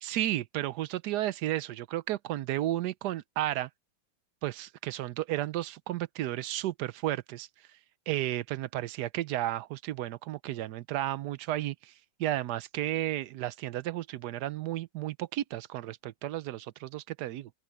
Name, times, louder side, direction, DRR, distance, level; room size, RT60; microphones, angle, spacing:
voice 1, 0.0-3.7 4.4-7.5 8.1-11.9 12.2-17.5, right 14 dB, 70° right, 1.0 m, -33 dB
open air
omnidirectional pair, 2.1 m